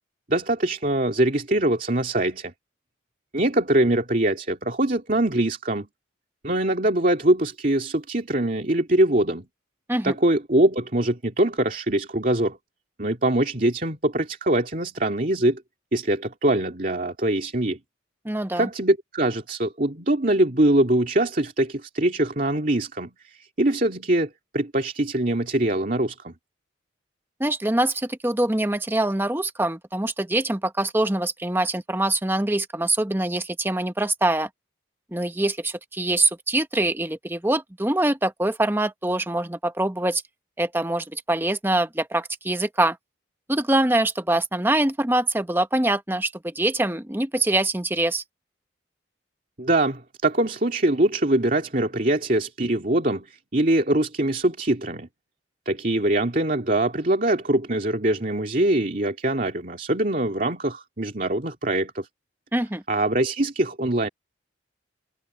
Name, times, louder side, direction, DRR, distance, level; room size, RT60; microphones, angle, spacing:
voice 1, 0.3-2.5 3.3-5.9 6.4-9.5 10.0-12.6 13.0-15.6 15.9-17.8 18.6-26.3 49.6-55.1 55.7-62.1 62.9-64.1, right 1 dB, 45° right, 2.5 m, -23 dB
voice 2, 18.2-18.7 27.4-34.5 35.1-40.2 40.6-43.0 43.5-48.2 62.5-62.8, right 1 dB, 10° right, 0.9 m, -24 dB
head